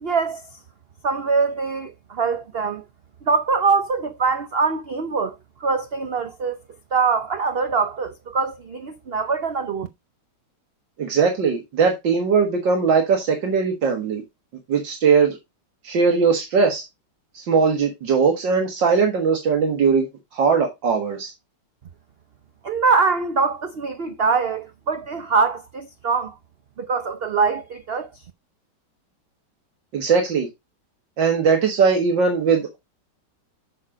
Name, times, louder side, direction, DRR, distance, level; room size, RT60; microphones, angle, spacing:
voice 1, 0.0-0.4 1.0-2.8 3.3-5.3 5.6-6.6 6.9-9.9 22.6-26.3 26.8-28.1, right 4 dB, 65° right, 0.5 m, -23 dB
voice 2, 11.0-14.2 14.7-15.4 15.8-16.8 17.3-20.1 20.3-21.3 29.9-30.5 31.2-32.8, right 5 dB, 85° right, 2.3 m, -20 dB
6.7 x 6.5 x 5.0 m
omnidirectional pair, 1.9 m